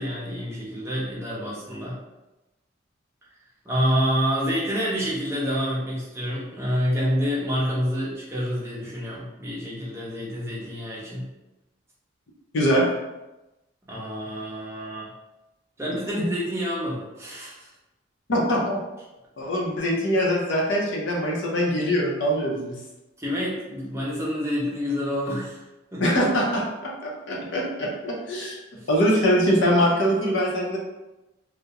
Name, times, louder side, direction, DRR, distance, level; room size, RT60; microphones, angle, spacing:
voice 1, 0.0-2.0 3.6-11.3 13.9-15.1 15.8-17.7 23.2-25.6 25.9-26.0 28.7-28.9, equal, 15° right, -6 dB, 0.6 m, -28 dB
voice 2, 18.3-18.8 19.4-22.8 26.0-28.6 28.9-30.8, equal, 65° left, -3 dB, 0.5 m, -23 dB
2.3 x 2.0 x 2.8 m, 1.0 s
head